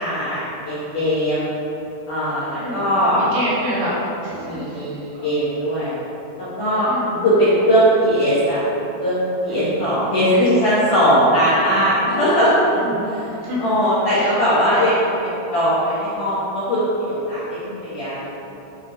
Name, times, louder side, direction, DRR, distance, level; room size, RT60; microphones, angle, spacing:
voice 1, 0.0-1.5 2.1-3.2 4.4-5.9 6.4-6.9 7.2-8.6 9.0-12.5 13.6-18.2, equal, 65° left, -11 dB, 2.0 m, -19 dB
voice 2, 2.5-4.0 4.2-4.8 5.1-5.3 6.8-7.2 9.5-9.8 10.3-11.1 12.0-12.1 12.7-13.1 13.4-13.8 14.1-14.3 17.5-17.8, equal, 70° right, -8 dB, 4.3 m, -29 dB
9.6 x 4.2 x 5.5 m, 3.0 s
omnidirectional pair, 5.8 m